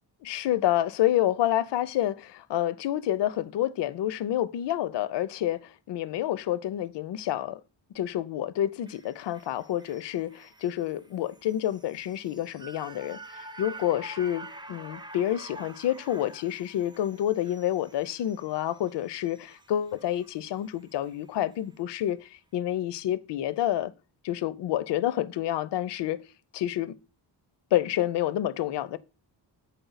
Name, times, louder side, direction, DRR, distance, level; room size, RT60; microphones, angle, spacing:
voice 1, 0.2-7.6 7.9-23.9 24.2-26.2 26.5-26.9 27.7-29.0, left 12 dB, 70° left, 0.5 m, -28 dB
sound 1, 8.9-21.2 21.5-21.6, right 2 dB, 10° right, 0.3 m, -48 dB
8.0 x 4.3 x 4.0 m
wide cardioid pair, 155°, 44 cm